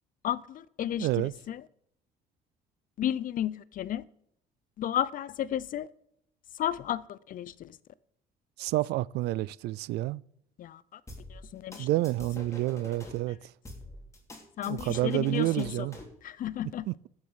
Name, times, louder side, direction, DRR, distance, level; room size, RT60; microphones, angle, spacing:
voice 1, 0.2-1.6 3.0-4.0 4.8-5.9 6.6-7.8 10.6-11.0 11.3-11.9 14.6-15.9 16.2-16.9, left 11 dB, 55° left, 0.6 m, -33 dB
voice 2, 1.0-1.3 8.6-10.2 11.8-13.4 14.7-16.0 16.9-17.1, right 17 dB, 75° right, 0.4 m, -29 dB
sound 1, 11.1-13.2 13.7-16.2, left 2 dB, 15° left, 3.0 m, -46 dB
13.5 x 7.5 x 5.7 m
cardioid pair, 110°, 17 cm